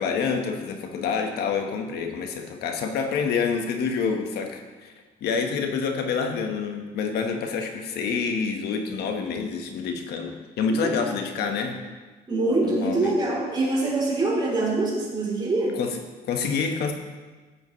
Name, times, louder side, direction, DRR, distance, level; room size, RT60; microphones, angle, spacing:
voice 1, 0.0-4.9 5.2-11.7 12.6-13.1 15.8-16.0 16.3-16.9, left 5 dB, 75° left, 4 dB, 1.4 m, -27 dB
voice 2, 10.7-11.2 11.5-11.6 12.3-15.8, right 2 dB, 25° right, -3 dB, 3.5 m, -25 dB
13.5 x 8.3 x 3.2 m, 1.3 s
cardioid pair, 110°, 17 cm